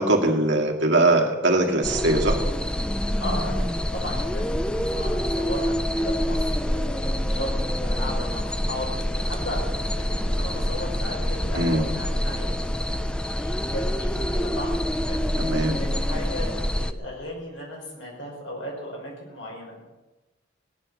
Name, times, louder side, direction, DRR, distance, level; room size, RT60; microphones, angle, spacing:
voice 1, 0.0-2.4 11.5-11.9 15.4-15.8, right 2 dB, 60° right, 2 dB, 2.2 m, -21 dB
sound 1, 1.8-16.9, equal, 5° left, 0.5 m, -26 dB
voice 2, 3.2-7.5 7.8-9.7 9.9-12.5 13.2-14.7 15.0-15.2 15.8-19.8, left 1 dB, 65° left, -1 dB, 5.6 m, -36 dB
17.5 x 10.5 x 6.4 m, 1.2 s
head